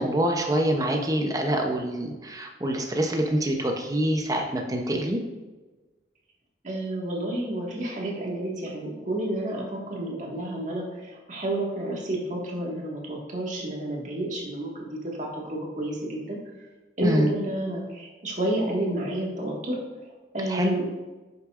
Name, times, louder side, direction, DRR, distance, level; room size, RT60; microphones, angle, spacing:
voice 1, 0.0-5.2 17.0-17.3 20.5-20.7, right 1 dB, 20° right, 2 dB, 0.7 m, -25 dB
voice 2, 6.6-16.4 17.0-19.8 20.1-20.8, right 1 dB, 45° right, -2 dB, 1.7 m, -30 dB
9.6 x 6.6 x 2.5 m, 1.2 s
head